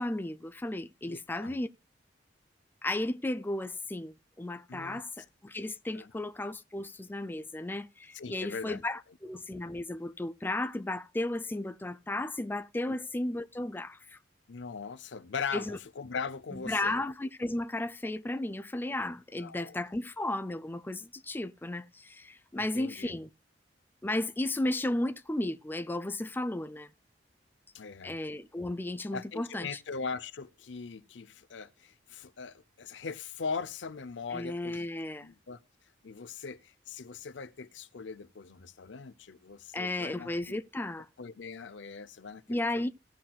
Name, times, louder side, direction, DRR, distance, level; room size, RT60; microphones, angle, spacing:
voice 1, 0.0-1.7 2.8-14.2 15.5-15.8 16.5-23.3 24.0-26.9 28.0-29.8 34.3-35.3 39.7-41.1 42.5-42.9, left 1 dB, 10° left, 0.4 m, -34 dB
voice 2, 1.1-1.6 4.7-5.0 5.9-6.1 8.1-8.8 12.9-13.0 14.5-17.0 19.4-19.8 22.6-23.2 27.7-28.2 29.1-34.9 35.2-35.6 36.0-40.6 41.2-42.9, left 5 dB, 90° left, 0.6 m, -40 dB
17.5 x 5.9 x 2.3 m
head